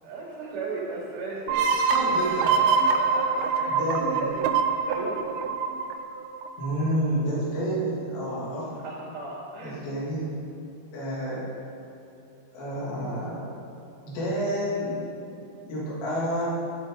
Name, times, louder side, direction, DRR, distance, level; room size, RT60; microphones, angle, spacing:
voice 1, 0.0-3.8 4.1-4.5 4.8-5.3 8.8-9.8, right 3 dB, 55° right, -4 dB, 3.9 m, -36 dB
sound 1, 1.5-6.9, right 5 dB, 80° right, 2.3 m, -25 dB
voice 2, 1.9-2.5 3.7-4.3 6.6-8.7 9.6-10.2 10.9-11.5 12.5-13.4 14.1-15.0 15.7-16.5, equal, 80° left, -8 dB, 5.1 m, -29 dB
13.0 x 12.0 x 4.1 m, 2.8 s
omnidirectional pair, 4.9 m